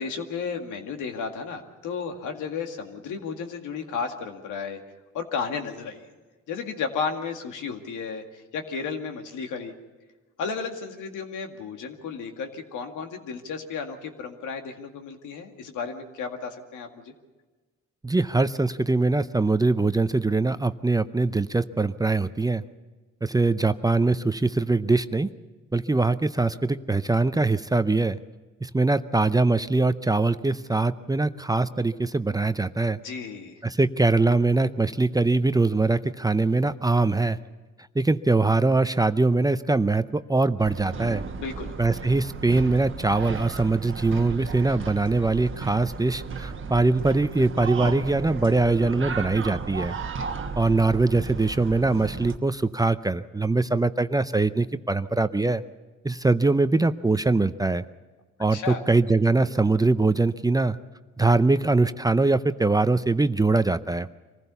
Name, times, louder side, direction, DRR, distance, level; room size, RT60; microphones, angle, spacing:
voice 1, 0.0-4.8 5.1-6.1 6.5-9.7 10.4-17.1 33.0-33.6 41.4-41.8 58.5-58.8, left 5 dB, 85° left, 5 dB, 2.1 m, -33 dB
voice 2, 18.0-22.6 23.2-25.3 25.7-28.2 28.6-33.0 33.6-37.4 38.0-41.2 41.8-50.0 50.6-55.6 56.0-57.8 58.4-60.8 61.2-64.1, right 3 dB, 10° right, 12 dB, 0.6 m, -22 dB
sound 1, 40.6-52.4, right 5 dB, 40° right, 1.2 m, -35 dB
24.5 x 15.5 x 7.0 m, 1.3 s
cardioid pair, 90°, 30 cm